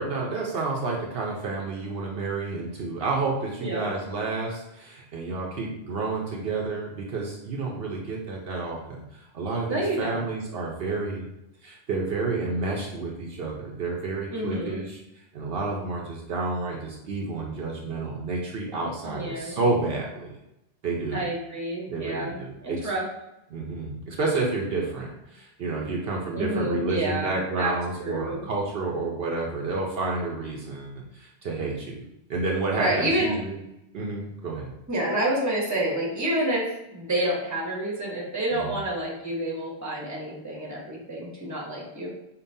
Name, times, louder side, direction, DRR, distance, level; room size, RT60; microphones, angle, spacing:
voice 1, 0.0-9.0 9.3-11.3 11.6-15.0 15.3-20.3 20.8-21.2 21.9-22.9 23.5-32.0 32.3-33.6 33.9-34.7 38.5-38.8, right 3 dB, 70° right, -2 dB, 0.9 m, -30 dB
voice 2, 3.6-3.9 9.7-10.2 14.3-14.8 19.0-19.6 21.1-23.0 26.3-27.7 28.0-28.4 32.8-33.3 34.9-42.1, right 1 dB, 15° right, -3 dB, 1.0 m, -29 dB
5.3 x 2.4 x 2.7 m, 0.90 s
omnidirectional pair, 1.1 m